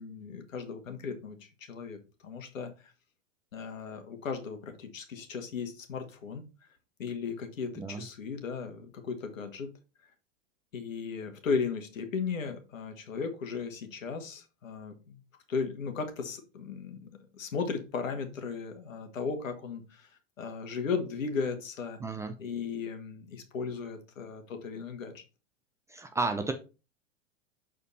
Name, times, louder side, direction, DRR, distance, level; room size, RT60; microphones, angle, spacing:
voice 1, 0.0-2.0 2.2-2.7 3.5-6.4 7.0-9.7 10.7-15.2 15.5-20.1 20.4-22.0 22.4-25.2, left 5 dB, 85° left, 6 dB, 1.7 m, -36 dB
voice 2, 22.0-22.3 25.9-26.5, right 3 dB, 10° right, 7 dB, 0.4 m, -32 dB
7.0 x 4.3 x 4.1 m, 0.31 s
hypercardioid pair, 115°, 38 cm